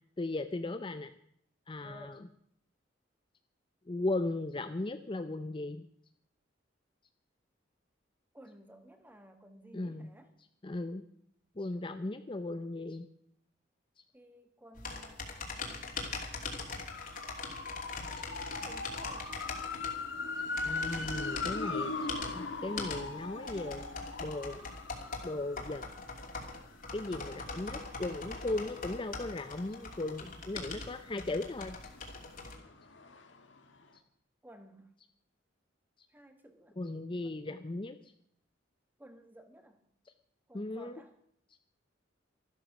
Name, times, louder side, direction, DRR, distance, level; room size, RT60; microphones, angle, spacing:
voice 1, 0.2-1.1 1.7-2.2 3.9-5.8 9.7-10.1 10.6-11.0 11.6-13.1 18.1-18.2 20.6-23.8 24.2-24.6 25.2-25.8 26.9-31.8 36.8-38.0 40.5-41.0, left 2 dB, 25° left, 9 dB, 0.6 m, -37 dB
voice 2, 1.8-2.2 8.3-10.3 14.1-15.9 18.6-19.4 34.4-34.9 36.1-36.8 37.2-37.4 39.0-39.8 40.5-41.1, right 1 dB, 10° right, 7 dB, 1.6 m, -55 dB
sound 1, 14.8-32.6, left 3 dB, 45° left, 2.8 m, -42 dB
sound 2, 16.9-30.6 31.0-33.6 33.8-33.9, left 3 dB, 70° left, 1.6 m, -41 dB
13.5 x 12.5 x 6.1 m, 0.68 s
head